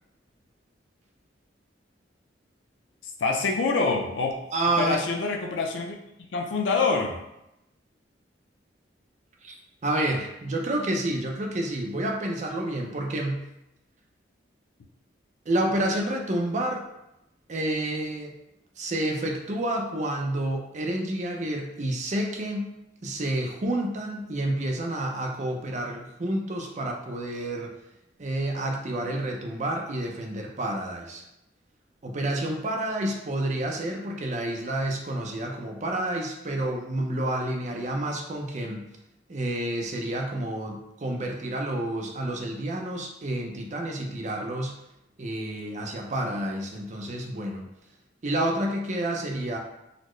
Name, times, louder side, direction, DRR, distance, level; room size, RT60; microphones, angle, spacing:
voice 1, 3.2-4.3 4.8-6.0 6.3-7.2, left 4 dB, 80° left, 2 dB, 0.5 m, -25 dB
voice 2, 4.5-5.0 9.4-9.6 9.8-13.4 15.5-16.9 17.5-18.4 18.8-22.7 23.0-27.7 28.2-31.2 32.0-38.9 39.3-44.8 45.2-47.7 48.2-49.6, right 1 dB, 40° right, 1 dB, 0.5 m, -29 dB
4.0 x 2.0 x 3.1 m, 0.87 s
head